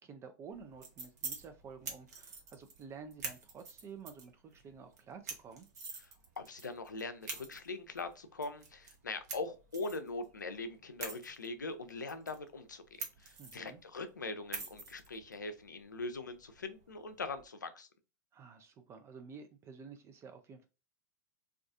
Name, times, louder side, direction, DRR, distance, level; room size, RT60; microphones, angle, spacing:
voice 1, 0.0-5.7 13.4-13.8 18.3-20.7, right 5 dB, 30° right, 0.4 m, -51 dB
sound 1, 0.5-17.4, right 4 dB, 65° right, 0.8 m, -48 dB
voice 2, 6.4-17.9, left 3 dB, 90° left, 0.4 m, -42 dB
2.3 x 2.3 x 2.5 m
hypercardioid pair, 95°, 10 cm